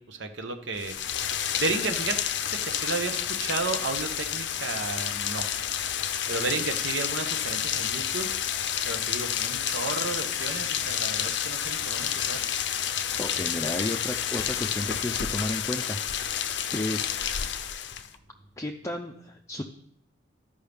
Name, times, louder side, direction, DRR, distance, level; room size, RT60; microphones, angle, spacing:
voice 1, 0.0-2.2 2.5-5.5 6.3-8.3 8.8-12.4, right 3 dB, 70° right, 6 dB, 1.0 m, -33 dB
Rain, 0.7-18.1, left 9 dB, 65° left, 0.5 m, -30 dB
voice 2, 13.2-17.0 18.6-19.6, left 1 dB, 15° left, 2 dB, 0.5 m, -33 dB
13.5 x 5.4 x 3.5 m, 0.71 s
head